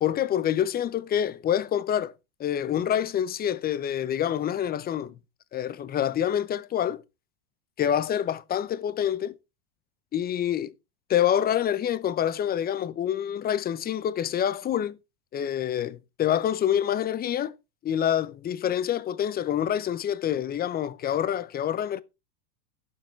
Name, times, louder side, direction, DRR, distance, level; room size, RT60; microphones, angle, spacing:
voice 1, 0.0-2.1 2.4-5.1 5.5-7.0 7.8-9.4 10.1-10.7 11.1-15.0 15.3-17.5 17.8-22.0, left 10 dB, 20° left, 0.8 m, -26 dB
12.0 x 8.2 x 4.6 m
hypercardioid pair, 120°, 45 cm